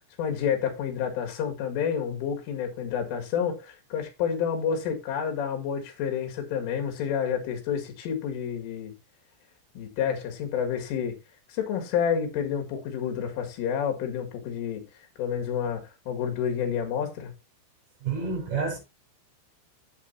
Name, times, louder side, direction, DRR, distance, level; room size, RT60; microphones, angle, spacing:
voice 1, 0.2-8.9 9.8-11.2 11.5-14.8 15.2-17.3, left 8 dB, 80° left, 4.6 m, -29 dB
voice 2, 18.0-18.8, right 5 dB, 45° right, 6.3 m, -29 dB
12.5 x 8.2 x 2.8 m
omnidirectional pair, 5.7 m